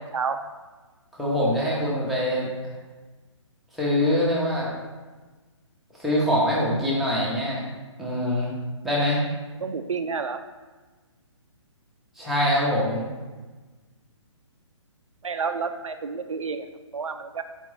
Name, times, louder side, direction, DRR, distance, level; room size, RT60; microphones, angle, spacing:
voice 1, 1.1-2.5 3.7-4.7 6.0-7.6 8.0-8.5 8.8-9.2 12.2-13.1, left 1 dB, ahead, -7 dB, 0.8 m, -24 dB
voice 2, 9.6-10.4 15.2-16.7 16.9-17.4, right 5 dB, 80° right, 8 dB, 0.4 m, -29 dB
4.7 x 3.4 x 3.2 m, 1.3 s
figure-of-eight pair, 135°, 16 cm